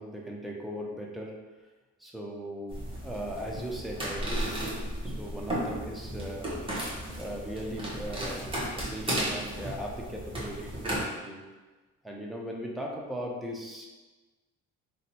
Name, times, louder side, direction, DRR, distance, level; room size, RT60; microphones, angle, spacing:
voice 1, 0.0-1.3 2.0-2.8 3.0-6.5 7.2-11.4 12.0-13.9, equal, ahead, -2 dB, 0.6 m, -38 dB
sound 1, 2.7-11.0, right 1 dB, 15° right, 1.0 m, -34 dB
2.7 x 2.2 x 4.1 m, 1.2 s
cardioid pair, 90°, 30 cm